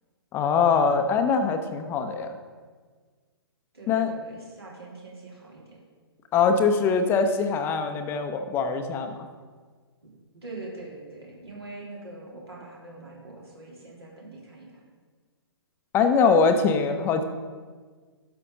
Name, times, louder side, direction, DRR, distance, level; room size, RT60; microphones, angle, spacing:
voice 1, 0.3-2.4 3.9-4.1 6.3-9.2 15.9-17.2, left 5 dB, 15° left, 6 dB, 0.7 m, -22 dB
voice 2, 3.7-5.8 10.3-14.8, right 2 dB, 75° right, -4 dB, 3.1 m, -43 dB
11.5 x 6.9 x 3.8 m, 1.5 s
figure-of-eight pair, 120°, 13 cm